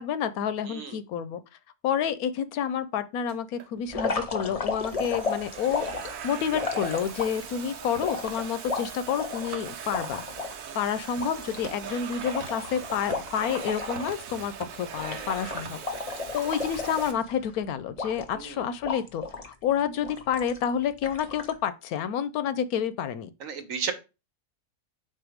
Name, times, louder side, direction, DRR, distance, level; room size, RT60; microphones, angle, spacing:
voice 1, 0.0-1.4 1.8-10.2 10.7-15.8 16.3-23.3, left 8 dB, 75° left, 1.0 m, -29 dB
voice 2, 0.7-1.0 5.6-5.7 10.7-10.8 14.9-15.5 18.3-18.6 23.4-23.9, right 6 dB, 65° right, 1.3 m, -35 dB
Domestic sounds home sounds, 3.3-3.7 4.4-17.1, right 8 dB, 85° right, 1.3 m, -40 dB
sound 1, 3.9-7.5 8.0-10.5 10.9-11.0 11.2-14.1 14.4-14.6 15.0-17.5 18.0-18.5 18.8-19.5 20.0-20.6 21.0-21.5, left 4 dB, 35° left, 0.7 m, -33 dB
4.7 x 4.0 x 5.0 m
omnidirectional pair, 1.6 m